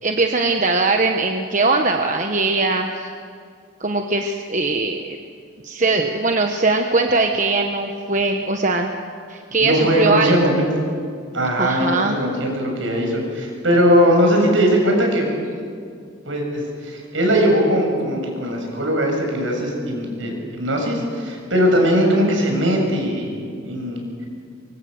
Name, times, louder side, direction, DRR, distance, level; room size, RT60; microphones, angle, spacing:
voice 1, 0.0-3.1 3.8-5.2 5.6-8.9 9.3-10.6 11.6-12.2, right 3 dB, 40° right, 3 dB, 1.2 m, -20 dB
voice 2, 9.5-10.7 11.3-15.3 16.3-24.0, equal, 70° right, 1 dB, 7.3 m, -19 dB
25.0 x 24.0 x 8.1 m, 2.3 s
head